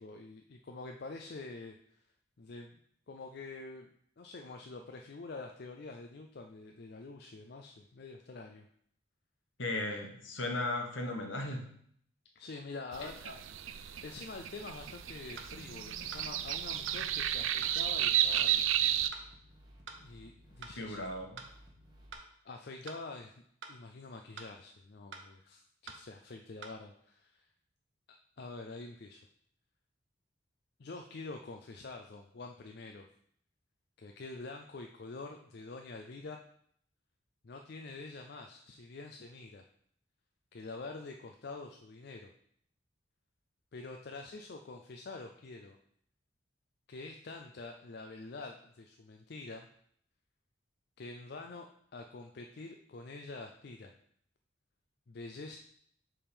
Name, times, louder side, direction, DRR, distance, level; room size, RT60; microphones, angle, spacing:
voice 1, 0.0-1.8 2.4-2.8 3.1-3.9 4.2-8.7 12.4-13.6 14.0-18.8 20.0-21.1 22.4-23.3 23.7-27.5 28.4-29.2 30.8-33.1 34.0-36.4 37.4-39.6 40.5-42.3 43.7-45.8 46.9-49.7 51.0-53.9 55.1-55.6, left 3 dB, 55° left, 3 dB, 0.4 m, -46 dB
voice 2, 9.6-11.6 13.0-13.4 20.8-21.4, left 2 dB, 70° left, 2 dB, 1.2 m, -36 dB
sound 1, 12.9-19.1, right 11 dB, 90° right, 0.4 m, -32 dB
sound 2, 14.6-22.1, equal, 20° right, 1.1 m, -58 dB
sound 3, 15.4-15.5 16.1-16.3 16.9-17.0 17.6-17.8 18.4-18.5 19.1-19.3 19.9-20.0 20.6-20.8 21.4-21.5 22.1-22.3 22.9-23.0 23.6-23.8 24.4-24.5 25.1-25.3 25.9-26.0 26.6-26.7, right 4 dB, 70° right, 0.8 m, -47 dB
7.1 x 3.6 x 5.1 m, 0.66 s
head